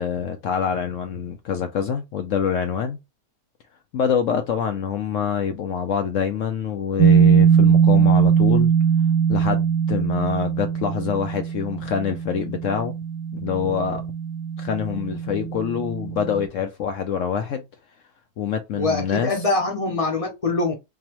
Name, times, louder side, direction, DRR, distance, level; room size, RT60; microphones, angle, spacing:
voice 1, 0.0-3.0 3.9-8.7 9.3-12.9 13.3-14.0 14.6-17.6 18.4-19.4, left 7 dB, 70° left, 0.7 m, -25 dB
sound 1, 7.0-16.5, right 7 dB, 70° right, 1.1 m, -20 dB
voice 2, 18.7-20.7, left 2 dB, 30° left, 0.6 m, -23 dB
3.9 x 2.8 x 2.9 m
omnidirectional pair, 1.9 m